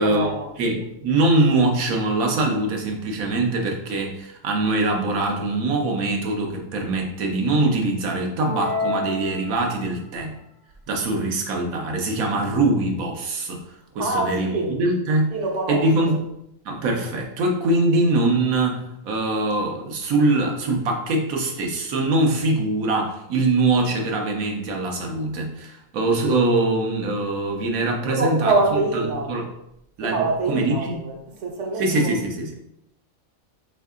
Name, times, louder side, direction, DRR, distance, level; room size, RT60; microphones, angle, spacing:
voice 1, 0.0-0.5 14.0-14.8 15.3-16.2 28.0-29.3 30.0-31.2 31.4-32.1, right 3 dB, 65° right, 0.9 m, -25 dB
voice 2, 0.6-10.3 10.9-13.6 13.9-15.3 15.7-16.2 16.6-28.5 28.9-29.5 30.0-30.2 30.5-31.0 31.8-32.6, right 2 dB, 85° right, 1.2 m, -23 dB
sound 1, 8.4-10.1, left 3 dB, 65° left, 1.0 m, -29 dB
3.6 x 3.3 x 3.5 m
omnidirectional pair, 1.4 m